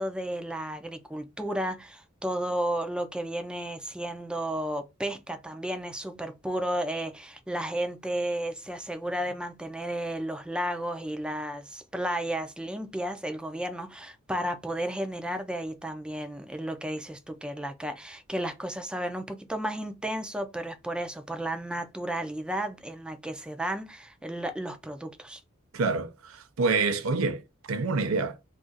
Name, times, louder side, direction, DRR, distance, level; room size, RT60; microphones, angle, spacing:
voice 1, 0.0-25.4, right 1 dB, 5° right, 0.4 m, -33 dB
voice 2, 25.7-27.4 27.7-28.4, right 4 dB, 90° right, 0.5 m, -27 dB
2.4 x 2.3 x 3.9 m
head